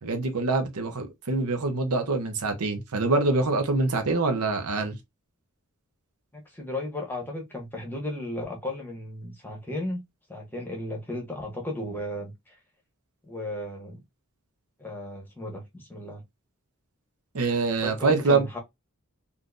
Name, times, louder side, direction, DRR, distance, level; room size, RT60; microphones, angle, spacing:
voice 1, 0.0-5.0 17.3-18.5, right 3 dB, 80° right, 0.8 m, -25 dB
voice 2, 6.3-10.0 10.3-12.6 13.2-14.0 14.8-16.2 17.8-18.6, left 1 dB, 10° left, 1.0 m, -35 dB
3.7 x 2.5 x 2.4 m
head